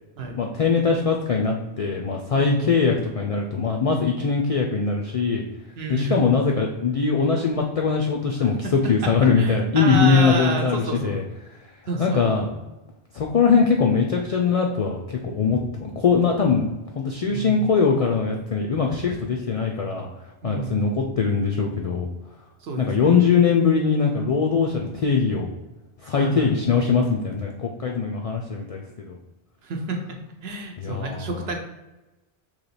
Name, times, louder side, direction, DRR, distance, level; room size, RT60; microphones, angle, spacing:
voice 1, 0.3-5.4 5.9-11.2 12.0-12.6 13.1-16.7 17.0-20.1 20.4-22.1 22.8-25.5 26.0-28.8 29.1-29.2 30.8-31.3, left 5 dB, 70° left, 1 dB, 0.3 m, -21 dB
voice 2, 2.3-2.7 5.8-6.4 8.4-9.1 9.4-11.3 11.9-12.2 17.2-17.6 20.4-20.8 22.6-23.3 26.1-26.5 29.6-31.6, right 3 dB, 70° right, 2 dB, 0.9 m, -30 dB
3.2 x 2.9 x 4.0 m, 1.1 s
omnidirectional pair, 1.1 m